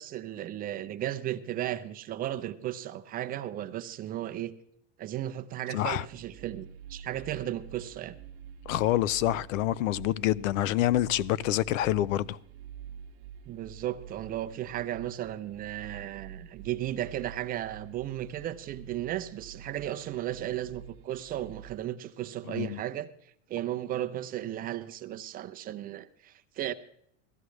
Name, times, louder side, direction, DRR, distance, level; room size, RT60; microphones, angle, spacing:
voice 1, 0.0-4.5 5.0-8.1 13.5-23.1 23.5-26.7, right 12 dB, 25° right, 0.5 m, -35 dB
voice 2, 5.7-6.0 8.7-12.4 22.5-22.8, left 14 dB, 85° left, 0.5 m, -27 dB
sound 1, 6.1-21.8, right 8 dB, 55° right, 0.8 m, -47 dB
17.5 x 14.0 x 3.2 m
supercardioid pair, 140°, 38 cm